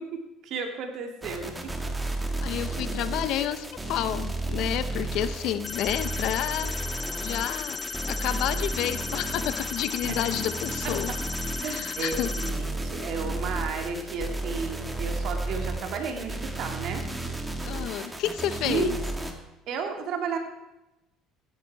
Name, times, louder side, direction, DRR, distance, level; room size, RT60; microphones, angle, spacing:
voice 1, 0.0-1.5 10.1-10.2 10.8-10.9 11.6-17.0 18.6-19.0 19.7-20.4, right 5 dB, 65° right, 4 dB, 2.3 m, -33 dB
sound 1, 1.2-19.3, right 2 dB, 10° right, 1.9 m, -33 dB
voice 2, 2.2-11.1 11.7-12.3 17.6-19.0, left 11 dB, 70° left, 13 dB, 0.8 m, -30 dB
sound 2, 5.6-12.5, left 4 dB, 25° left, 1.0 m, -36 dB
15.5 x 11.0 x 4.7 m, 0.97 s
supercardioid pair, 100°, 0 cm